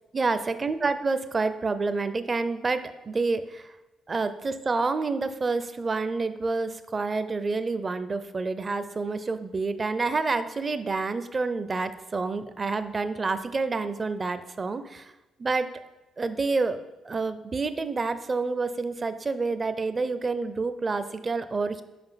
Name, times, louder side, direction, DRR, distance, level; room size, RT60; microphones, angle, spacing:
voice 1, 0.1-3.7 4.1-15.1 15.4-15.7 16.2-16.8 17.0-21.8, right 3 dB, 30° right, 12 dB, 0.5 m, -28 dB
6.0 x 5.1 x 5.7 m, 1.0 s
cardioid pair, 90°, 0 cm